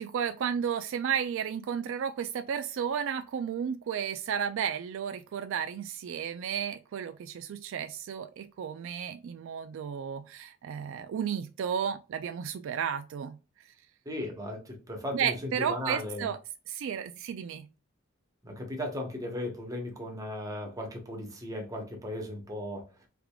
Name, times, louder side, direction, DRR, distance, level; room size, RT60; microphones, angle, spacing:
voice 1, 0.0-13.4 15.1-16.4 16.7-17.7, right 8 dB, 60° right, 0.3 m, -33 dB
voice 2, 14.0-16.3 18.4-23.0, left 1 dB, 15° right, 1.0 m, -36 dB
3.5 x 3.5 x 2.3 m
head